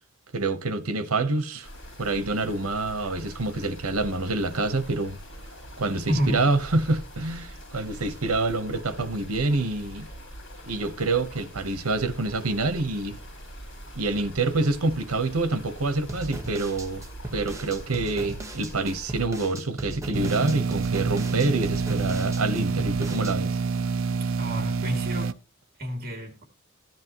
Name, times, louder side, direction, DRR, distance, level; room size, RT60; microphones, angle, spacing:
voice 1, 0.3-1.7 2.0-5.2 5.8-10.1 10.6-13.2 13.9-17.0 17.3-23.6, right 2 dB, 90° right, 1.1 m, -27 dB
sound 1, 1.6-19.3, equal, 60° left, 6.9 m, -43 dB
voice 2, 6.1-6.4 24.4-25.3 25.8-26.4, equal, 45° right, 2.7 m, -29 dB
sound 2, 16.1-23.3, right 2 dB, 15° right, 1.3 m, -37 dB
sound 3, 20.1-25.3, right 4 dB, 70° right, 0.6 m, -27 dB
14.0 x 10.5 x 3.0 m
head